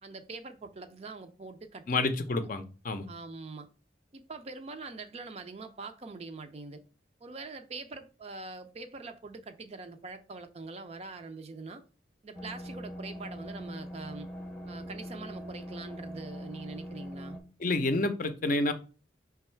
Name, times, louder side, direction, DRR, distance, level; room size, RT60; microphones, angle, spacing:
voice 1, 0.0-2.5 3.1-3.7 4.1-6.8 7.2-11.8 12.2-14.3 14.7-17.4, right 3 dB, 35° right, 0.4 m, -44 dB
voice 2, 1.9-3.1 17.6-18.7, left 2 dB, 45° left, 0.5 m, -29 dB
sound 1, 12.3-17.4, equal, 5° left, 0.6 m, -42 dB
5.3 x 2.3 x 4.3 m
head